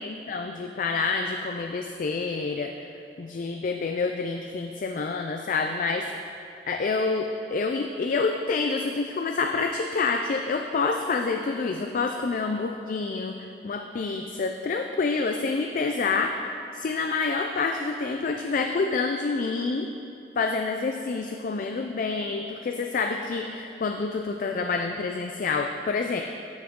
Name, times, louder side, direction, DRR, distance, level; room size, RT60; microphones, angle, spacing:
voice 1, 0.0-2.7 3.2-6.3 6.7-19.9 20.4-26.2, left 4 dB, 50° left, 5 dB, 0.4 m, -28 dB
12.5 x 6.2 x 3.6 m, 2.7 s
head